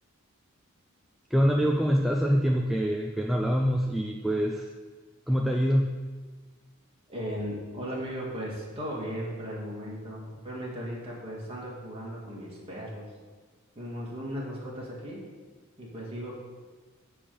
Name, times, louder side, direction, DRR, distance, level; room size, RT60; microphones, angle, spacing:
voice 1, 1.3-4.7 5.3-6.0, equal, ahead, 1 dB, 0.4 m, -25 dB
voice 2, 7.1-13.1 13.7-15.2 15.8-16.3, equal, 30° right, -5 dB, 2.2 m, -36 dB
10.0 x 3.6 x 6.9 m, 1.4 s
head